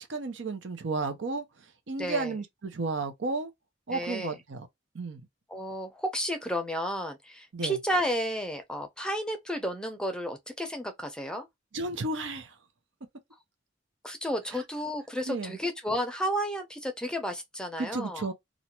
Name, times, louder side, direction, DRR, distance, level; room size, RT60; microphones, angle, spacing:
voice 1, 0.0-1.4 1.9-3.5 3.9-4.7 4.9-5.2 7.5-7.8 11.7-12.5 14.5-14.6 15.3-15.6 17.8-18.3, right 3 dB, 85° right, 0.6 m, -33 dB
voice 2, 2.0-2.3 3.9-4.4 5.5-11.5 14.0-18.3, equal, 5° left, 0.5 m, -32 dB
2.5 x 2.1 x 2.9 m
head